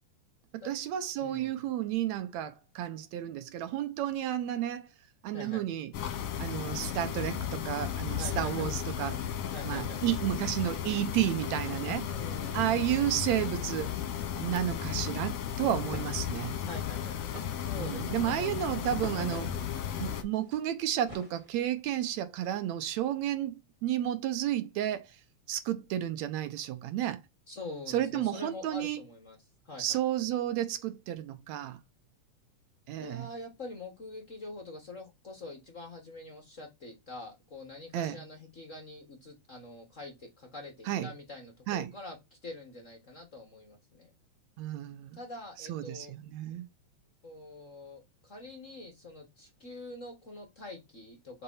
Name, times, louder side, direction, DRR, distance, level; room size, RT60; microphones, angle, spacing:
voice 1, 0.5-4.9 5.2-5.9 6.4-9.3 9.7-12.0 12.5-13.9 14.4-16.6 17.8-19.5 20.0-25.2 25.5-27.2 27.9-29.0 29.8-31.8 32.9-33.3 37.9-38.2 40.9-41.1 41.7-41.9 44.6-45.2 45.6-46.7, right 12 dB, 75° right, 1.9 m, -32 dB
voice 2, 1.2-1.6 5.3-5.7 8.2-8.7 9.5-10.0 11.9-12.7 16.6-17.2 17.6-19.4 27.5-29.4 29.6-30.0 33.0-44.1 45.2-46.1 47.2-51.4, left 2 dB, 35° left, 1.3 m, -45 dB
sound 1, 5.9-20.2, left 9 dB, 65° left, 2.2 m, -35 dB
sound 2, 15.8-21.9, equal, 10° right, 2.0 m, -49 dB
5.6 x 3.9 x 5.6 m
omnidirectional pair, 3.6 m